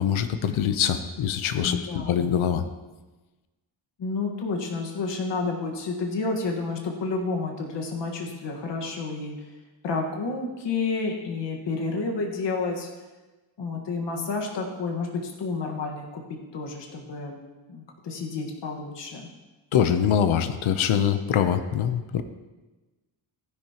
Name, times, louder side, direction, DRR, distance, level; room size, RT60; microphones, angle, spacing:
voice 1, 0.0-2.6 19.7-22.2, left 8 dB, 80° left, 9 dB, 0.8 m, -24 dB
voice 2, 1.6-2.1 4.0-9.3 9.8-12.9 13.6-16.2 16.5-17.4 17.7-19.3, left 3 dB, 60° left, 1 dB, 1.6 m, -30 dB
16.0 x 10.5 x 3.0 m, 1.2 s
wide cardioid pair, 150°, 48 cm